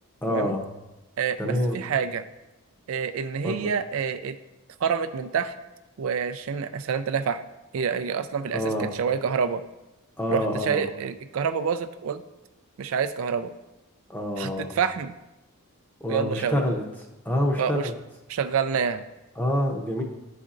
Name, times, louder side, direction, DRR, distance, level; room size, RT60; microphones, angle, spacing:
voice 1, 0.2-0.7 1.4-1.8 3.4-3.7 8.5-8.9 10.2-10.8 14.1-14.7 16.0-16.8 17.2-18.0 19.4-20.0, left 1 dB, 10° left, 0 dB, 0.7 m, -27 dB
voice 2, 1.2-2.2 2.9-4.4 4.8-5.5 6.0-7.4 7.7-9.6 10.3-12.2 12.8-13.5 14.4-15.2 16.1-16.6 17.6-17.9 18.3-19.0, right 6 dB, 70° right, 10 dB, 0.3 m, -27 dB
11.0 x 4.1 x 2.5 m, 1.0 s
head